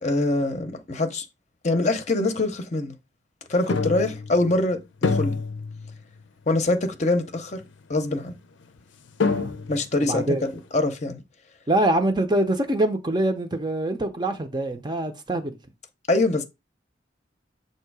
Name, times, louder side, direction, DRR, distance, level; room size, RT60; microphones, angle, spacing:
voice 1, 0.0-1.3 1.6-2.9 3.5-4.8 5.1-5.4 6.5-7.6 7.9-8.3 9.7-11.2 16.1-16.4, left 2 dB, 40° left, 0.7 m, -24 dB
sound 1, 3.7-4.6 5.0-6.2 6.6-6.7 7.6-7.7 8.8-8.9 9.2-10.0, left 4 dB, 85° left, 0.6 m, -26 dB
voice 2, 10.0-10.4 11.7-15.5, right 1 dB, 25° right, 0.6 m, -24 dB
7.2 x 2.8 x 4.7 m
head